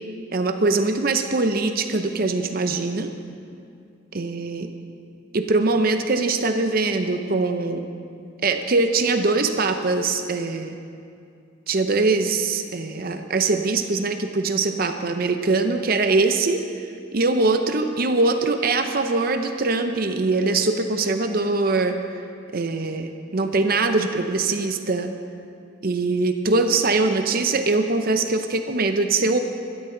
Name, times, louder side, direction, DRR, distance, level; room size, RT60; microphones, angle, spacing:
voice 1, 0.3-3.1 4.1-4.7 5.3-7.9 8.4-10.8 11.7-16.6 17.1-21.9 22.5-25.1 25.8-29.4, right 3 dB, 45° right, 7 dB, 0.7 m, -22 dB
20.5 x 13.0 x 3.9 m, 2.4 s
head